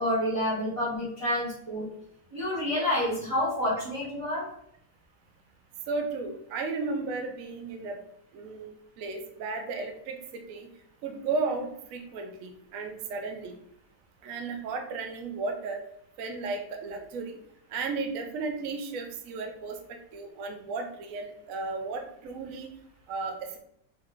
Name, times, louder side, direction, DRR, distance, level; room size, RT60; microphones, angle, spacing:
voice 1, 0.0-1.9 2.3-4.5, left 1 dB, 20° right, -8 dB, 1.1 m, -28 dB
voice 2, 5.9-8.0 8.3-10.7 11.0-13.5 14.2-15.8 16.2-17.3 17.7-22.7 23.1-23.6, right 3 dB, 65° right, 4 dB, 0.9 m, -34 dB
3.4 x 2.9 x 3.6 m, 0.71 s
omnidirectional pair, 1.8 m